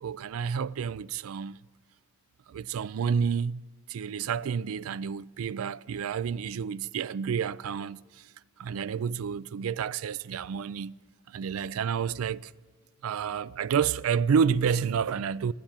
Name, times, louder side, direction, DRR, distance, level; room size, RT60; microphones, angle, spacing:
voice 1, 0.0-1.6 2.5-3.6 3.9-8.2 8.6-10.9 11.3-12.5 13.0-15.5, right 7 dB, 85° right, 0.4 m, -29 dB
20.5 x 7.8 x 7.3 m
head